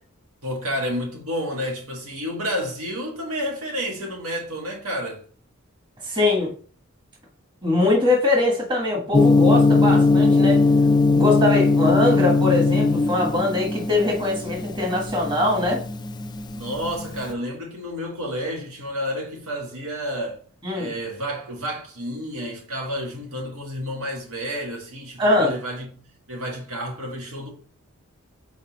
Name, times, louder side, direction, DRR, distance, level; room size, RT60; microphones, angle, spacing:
voice 1, 0.4-5.2 16.5-20.4 20.7-26.0 26.3-27.5, equal, 80° right, 1.8 m, -30 dB
voice 2, 6.0-6.5 7.6-10.6 11.1-15.8 20.6-20.9 25.2-25.6, left 2 dB, 20° right, 1.4 m, -22 dB
Gong, 9.1-17.2, left 3 dB, 20° left, 0.3 m, -19 dB
4.4 x 4.1 x 5.2 m
head